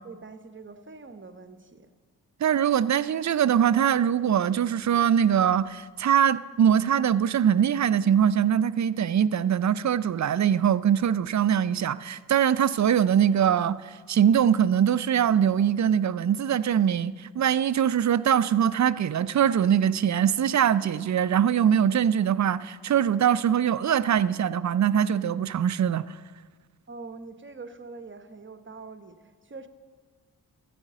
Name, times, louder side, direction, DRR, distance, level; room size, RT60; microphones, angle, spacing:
voice 1, 0.0-1.9 26.9-29.7, right 4 dB, 30° right, 1.0 m, -44 dB
voice 2, 2.4-26.2, right 9 dB, 45° right, 0.5 m, -22 dB
14.5 x 5.0 x 7.4 m
cardioid pair, 50°, 39 cm